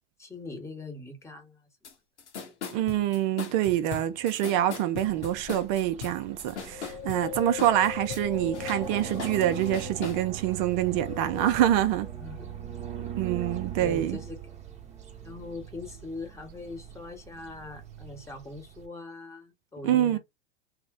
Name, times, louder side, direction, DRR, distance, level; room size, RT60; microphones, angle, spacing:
voice 1, 0.2-1.7 12.1-12.5 13.5-14.4 15.2-20.2, left 3 dB, 10° left, 1.1 m, -41 dB
sound 1, 1.8-1.9 2.2-8.3 8.5-10.2, left 5 dB, 85° left, 1.1 m, -39 dB
voice 2, 2.7-12.1 13.2-14.2 19.8-20.2, right 12 dB, 45° right, 0.5 m, -26 dB
sound 2, 5.1-18.9, right 8 dB, 20° right, 0.8 m, -41 dB
Wind, 6.7-10.3 10.8-12.1 12.6-12.7, left 9 dB, 55° left, 0.7 m, -40 dB
3.2 x 2.1 x 3.7 m
hypercardioid pair, 100°, 34 cm